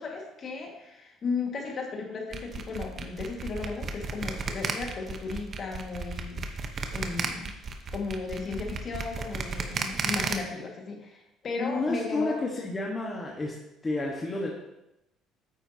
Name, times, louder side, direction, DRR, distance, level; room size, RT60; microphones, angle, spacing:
voice 1, 0.0-6.4 6.9-7.5 7.9-12.4, left 4 dB, 40° left, 1 dB, 1.9 m, -35 dB
sound 1, 2.3-10.3, right 5 dB, 40° right, 1.0 m, -33 dB
voice 2, 11.6-13.6 13.8-14.5, left 2 dB, 20° left, -2 dB, 1.4 m, -30 dB
9.4 x 8.2 x 2.9 m, 0.89 s
cardioid pair, 110°, 0 cm